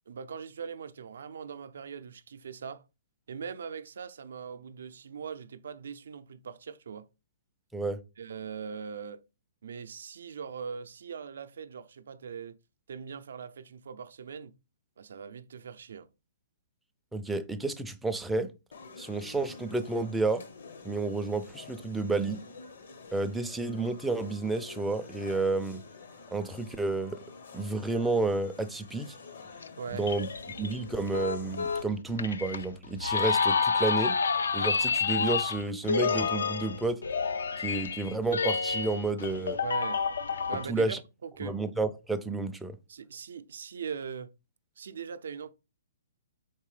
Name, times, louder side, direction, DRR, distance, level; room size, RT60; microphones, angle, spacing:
voice 1, 0.1-2.8 3.3-7.1 8.2-9.2 9.6-12.6 12.9-14.5 15.0-16.1 29.8-30.1 39.6-40.0 40.5-41.0 41.2-41.6 42.9-44.3 44.8-45.5, right 6 dB, 70° right, 0.4 m, -40 dB
voice 2, 17.1-18.5 19.0-20.4 20.8-22.4 23.1-25.8 26.3-27.2 27.5-29.1 29.9-30.3 30.6-34.2 34.5-37.0 37.6-39.6 40.7-41.0 41.4-42.7, right 3 dB, 5° right, 0.4 m, -31 dB
sound 1, 18.7-31.8, left 4 dB, 65° left, 0.9 m, -49 dB
sound 2, 29.6-40.7, left 5 dB, 85° left, 0.4 m, -29 dB
4.5 x 3.2 x 3.2 m
hypercardioid pair, 145°, 0 cm